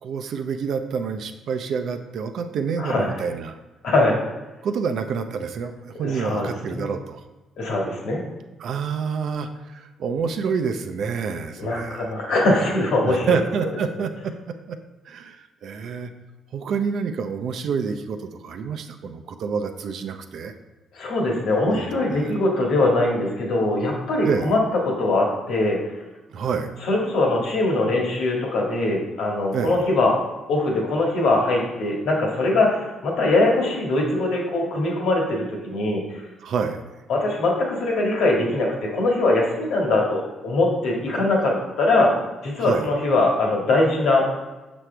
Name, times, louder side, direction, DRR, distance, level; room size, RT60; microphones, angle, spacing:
voice 1, 0.0-3.6 4.6-7.2 8.6-12.1 13.0-14.8 15.1-16.1 16.5-20.5 21.7-22.3 24.3-24.5 26.3-26.7 29.5-29.8 36.4-36.8 42.6-42.9, right 6 dB, 70° right, 7 dB, 0.6 m, -28 dB
voice 2, 2.8-3.1 3.8-4.2 6.0-6.9 7.6-8.2 11.6-13.3 20.9-24.6 24.8-25.8 26.8-30.1 30.5-36.2 37.1-42.1 42.4-44.3, left 2 dB, 80° left, -1 dB, 1.7 m, -22 dB
6.2 x 6.1 x 3.3 m, 1.1 s
cardioid pair, 90°, 0 cm